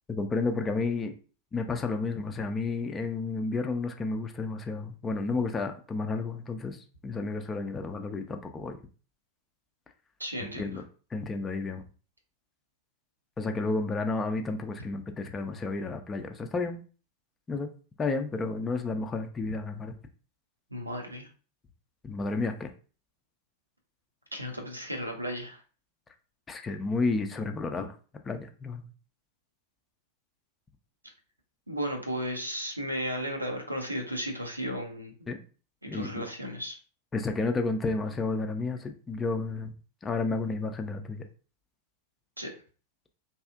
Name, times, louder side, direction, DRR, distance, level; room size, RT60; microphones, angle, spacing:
voice 1, 0.1-1.1 1.5-6.8 7.0-8.8 10.6-10.8 11.1-11.8 13.4-16.8 17.5-17.7 18.0-19.9 22.0-22.7 26.5-27.9 28.3-28.8 35.3-35.4 35.9-36.3 37.1-39.7 40.0-41.2, left 3 dB, 15° left, 5 dB, 0.4 m, -31 dB
voice 2, 10.2-10.8 20.7-21.3 24.3-25.6 31.7-35.1 35.8-36.8 42.4-42.5, equal, 85° right, 2 dB, 0.6 m, -34 dB
2.7 x 2.4 x 2.3 m, 0.38 s
figure-of-eight pair, 90°, 0 cm